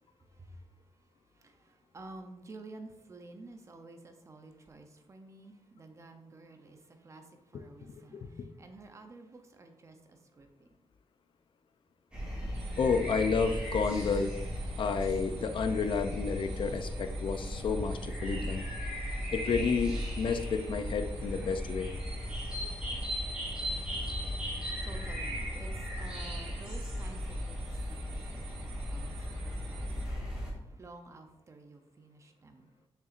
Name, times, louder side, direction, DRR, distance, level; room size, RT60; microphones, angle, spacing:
voice 1, 0.3-0.7 1.3-10.7 23.7-23.9 24.4-24.5 24.8-27.6 27.9-32.9, right 2 dB, 30° right, 6 dB, 0.6 m, -51 dB
voice 2, 7.8-8.3 12.8-14.4 14.8-18.7 19.3-21.9, left 5 dB, 55° left, 7 dB, 0.5 m, -31 dB
sound 1, 12.1-30.5, equal, 10° right, 2.0 m, -36 dB
sound 2, 12.5-30.0, right 8 dB, 85° right, 0.7 m, -53 dB
6.7 x 5.8 x 2.5 m, 1.0 s
wide cardioid pair, 170°, 10 cm